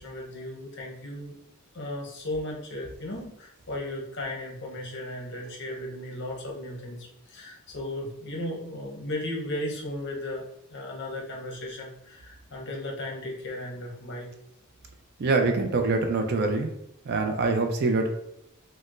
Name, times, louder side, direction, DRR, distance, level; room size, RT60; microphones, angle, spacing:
voice 1, 0.0-1.4 1.7-10.4 10.7-14.3, left 1 dB, 55° left, -1 dB, 0.7 m, -36 dB
voice 2, 15.2-16.7 17.1-18.1, right 3 dB, 45° right, 4 dB, 0.4 m, -24 dB
4.3 x 2.0 x 2.4 m, 0.78 s
head